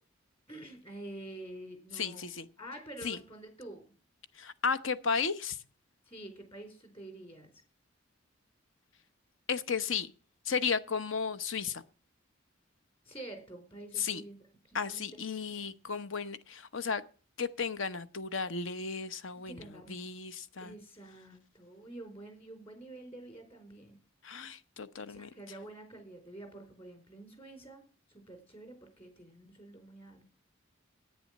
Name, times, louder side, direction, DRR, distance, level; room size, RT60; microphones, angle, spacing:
voice 1, 0.5-2.3 2.6-3.9 6.1-7.5 13.1-14.4 14.6-15.2 19.3-19.9 20.6-24.0 25.1-30.3, right 1 dB, 30° left, 6 dB, 4.3 m, -48 dB
voice 2, 1.9-2.5 3.0-3.2 4.4-5.6 9.5-10.1 10.5-11.8 14.0-14.2 14.7-17.0 17.4-20.7 24.2-25.3, left 5 dB, 70° left, 13 dB, 0.8 m, -34 dB
10.5 x 9.6 x 7.3 m, 0.39 s
head